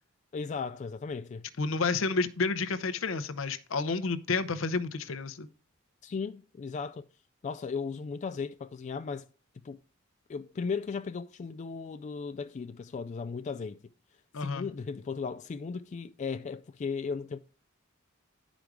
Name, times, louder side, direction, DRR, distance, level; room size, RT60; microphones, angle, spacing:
voice 1, 0.3-1.5 6.0-7.0 7.4-9.3 9.6-9.8 10.3-13.8 14.4-17.4, left 5 dB, 35° left, 0.3 m, -36 dB
voice 2, 1.6-5.5 14.3-14.7, left 4 dB, 70° left, 0.7 m, -30 dB
10.5 x 5.1 x 4.7 m
head